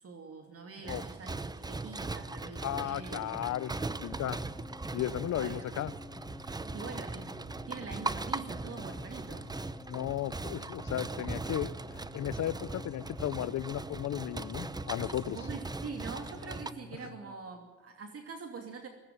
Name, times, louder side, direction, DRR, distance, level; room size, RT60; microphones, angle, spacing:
voice 1, 0.0-3.2 5.2-5.7 6.7-9.5 15.3-18.9, right 5 dB, 50° right, 4 dB, 2.7 m, -44 dB
sound 1, 0.8-16.7, right 3 dB, 15° right, 0.7 m, -39 dB
sound 2, 2.2-17.2, left 7 dB, 25° left, 4.5 m, -52 dB
voice 2, 2.6-4.4 4.9-5.9 9.9-15.4, left 12 dB, 65° left, 20 dB, 0.7 m, -35 dB
sound 3, 2.6-17.3, left 1 dB, 10° left, 2.5 m, -53 dB
17.5 x 17.5 x 9.4 m, 1.2 s
cardioid pair, 90°, 30 cm